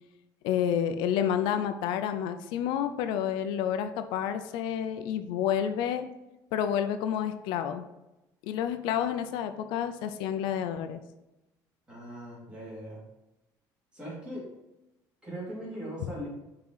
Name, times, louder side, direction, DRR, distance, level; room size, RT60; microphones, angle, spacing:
voice 1, 0.4-6.1 6.5-7.8 8.4-11.0, left 9 dB, 85° left, 8 dB, 0.5 m, -29 dB
voice 2, 11.9-13.0 13.9-14.5 15.2-16.3, equal, 15° right, -5 dB, 2.2 m, -39 dB
5.5 x 3.8 x 4.6 m, 0.94 s
cardioid pair, 170°, 8 cm